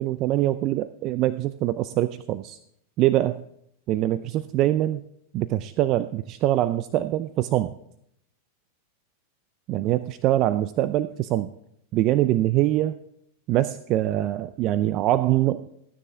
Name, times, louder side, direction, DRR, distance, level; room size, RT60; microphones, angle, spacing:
voice 1, 0.0-2.6 3.0-3.4 3.9-5.0 5.3-7.7 9.7-11.5 11.9-12.9 13.5-15.6, right 14 dB, 45° right, 14 dB, 0.5 m, -23 dB
15.0 x 9.8 x 3.6 m, 0.72 s
hypercardioid pair, 95°, 0 cm